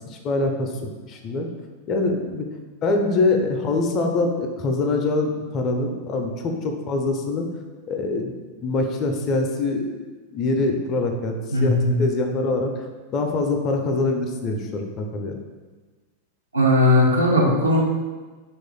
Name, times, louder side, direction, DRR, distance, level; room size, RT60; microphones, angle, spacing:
voice 1, 0.1-1.5 1.9-2.5 2.8-7.5 7.9-12.7 13.1-15.4, left 2 dB, 35° left, 3 dB, 0.4 m, -24 dB
voice 2, 11.5-12.0 16.5-17.8, left 1 dB, 80° right, -2 dB, 0.6 m, -18 dB
3.0 x 2.3 x 3.7 m, 1.3 s
figure-of-eight pair, 90°, 0 cm